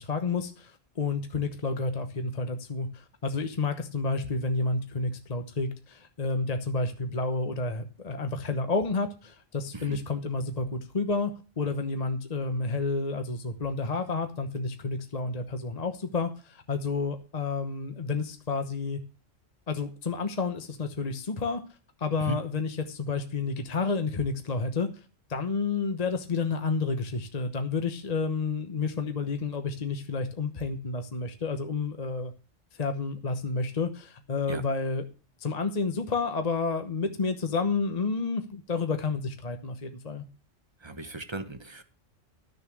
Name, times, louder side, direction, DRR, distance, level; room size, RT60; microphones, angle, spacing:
voice 1, 0.0-19.0 19.7-21.6 22.0-24.9 25.3-32.3 32.8-35.0 35.4-40.2, left 4 dB, 35° left, 7 dB, 1.0 m, -30 dB
voice 2, 40.8-41.8, right 3 dB, 25° right, 9 dB, 1.1 m, -36 dB
12.5 x 6.8 x 6.1 m, 0.34 s
omnidirectional pair, 1.3 m